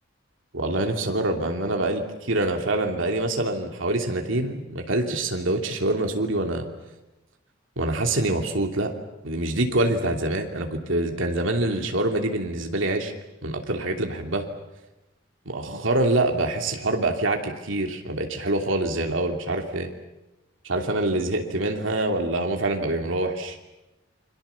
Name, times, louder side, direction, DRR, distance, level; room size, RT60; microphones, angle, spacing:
voice 1, 0.5-6.6 7.8-8.9 9.2-13.1 13.4-14.4 15.5-19.9 20.6-23.6, right 2 dB, 75° right, 3 dB, 2.9 m, -25 dB
29.5 x 23.5 x 7.1 m, 0.99 s
head